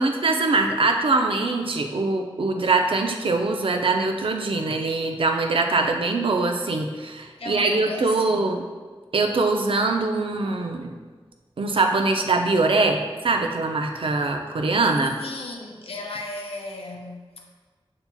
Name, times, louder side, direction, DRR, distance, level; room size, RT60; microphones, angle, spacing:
voice 1, 0.0-8.6 9.1-10.9 11.6-15.2, right 3 dB, 70° right, 4 dB, 0.4 m, -23 dB
voice 2, 7.4-8.5 15.2-17.5, left 2 dB, 85° left, 1 dB, 0.5 m, -35 dB
7.0 x 2.8 x 2.2 m, 1.4 s
wide cardioid pair, 80°, 10 cm